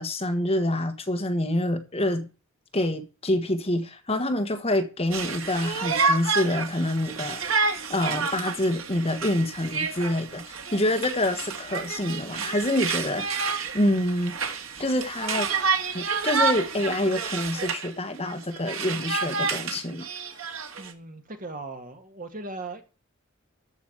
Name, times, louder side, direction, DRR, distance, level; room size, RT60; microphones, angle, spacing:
voice 1, 0.0-2.3 2.7-7.6 7.9-13.4 13.7-14.4 14.8-15.5 15.9-20.1, left 1 dB, 30° left, 1.4 m, -26 dB
Conversation, 5.1-17.9 18.3-20.9, right 5 dB, 80° right, 1.9 m, -29 dB
voice 2, 20.8-22.8, right 2 dB, 40° right, 2.0 m, -38 dB
14.0 x 5.2 x 8.0 m
head